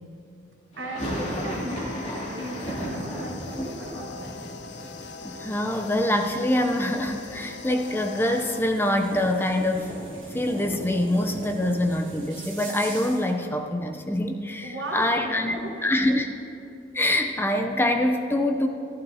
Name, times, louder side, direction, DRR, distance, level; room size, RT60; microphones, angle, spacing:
sound 1, 0.7-6.7 6.9-7.8 8.1-8.2 8.4-10.6, equal, 35° left, 2.6 m, -35 dB
voice 1, 0.8-4.4 14.6-16.0, right 1 dB, 80° right, -2 dB, 1.3 m, -36 dB
sound 2, 1.0-8.6, left 5 dB, 70° left, 0.6 m, -42 dB
sound 3, 2.4-13.4, right 1 dB, 45° right, 3.0 m, -42 dB
voice 2, 5.2-10.0 10.3-16.3 16.9-18.7, left 1 dB, 10° left, 4 dB, 0.5 m, -25 dB
14.5 x 14.0 x 2.7 m, 2.6 s
head